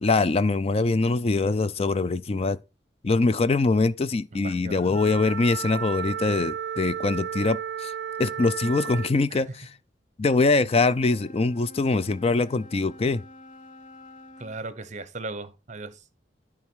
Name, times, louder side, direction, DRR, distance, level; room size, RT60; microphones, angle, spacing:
voice 1, 0.0-2.6 3.0-7.9 8.2-9.7 10.2-13.2, left 3 dB, 35° left, 0.4 m, -23 dB
voice 2, 4.3-5.0 9.3-9.4 14.4-16.0, right 3 dB, 40° right, 0.9 m, -37 dB
Wind instrument woodwind instrument, 4.9-9.2, right 8 dB, 70° right, 0.5 m, -33 dB
Wind instrument woodwind instrument 2, 10.6-14.6, left 1 dB, 50° left, 1.3 m, -48 dB
10.5 x 3.8 x 6.2 m
head